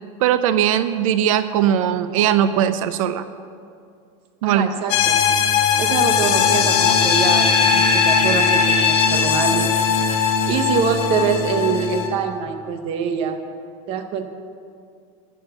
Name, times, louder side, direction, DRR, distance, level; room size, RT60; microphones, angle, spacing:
voice 1, 0.2-3.2 4.4-4.7, right 10 dB, 85° right, 12 dB, 0.6 m, -19 dB
voice 2, 4.4-5.2 5.8-9.7 10.5-13.4 13.9-14.3, right 6 dB, 35° right, 7 dB, 0.9 m, -24 dB
sound 1, 4.9-12.1, left 6 dB, 50° left, 1.7 m, -18 dB
13.5 x 6.3 x 8.0 m, 2.3 s
supercardioid pair, 180°, 17 cm